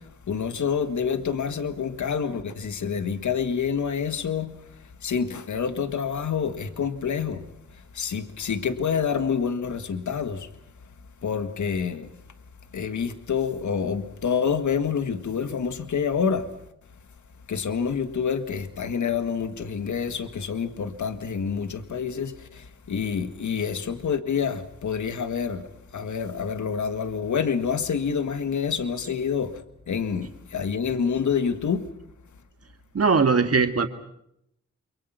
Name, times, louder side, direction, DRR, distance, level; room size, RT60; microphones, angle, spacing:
voice 1, 0.3-4.6 5.0-7.4 8.0-10.5 11.2-12.1 12.7-16.5 17.5-25.6 25.9-29.5 29.9-31.9, left 6 dB, 80° left, 1.8 m, -27 dB
voice 2, 32.9-33.9, right 5 dB, 55° right, 2.3 m, -20 dB
28.0 x 23.5 x 5.9 m
cardioid pair, 55°, 29 cm